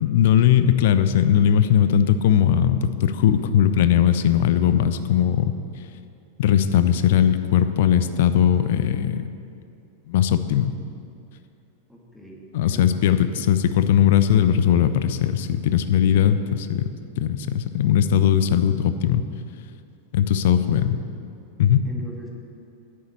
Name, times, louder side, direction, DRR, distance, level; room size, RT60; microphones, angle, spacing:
voice 1, 0.0-5.6 6.4-9.3 10.1-10.7 12.5-16.9 17.2-19.2 20.1-20.9 21.6-21.9, left 9 dB, 55° left, 11 dB, 0.6 m, -19 dB
voice 2, 11.9-12.9 20.5-20.9 21.8-22.3, equal, 5° left, -3 dB, 2.2 m, -42 dB
9.7 x 7.6 x 8.4 m, 2.5 s
figure-of-eight pair, 90°, 0 cm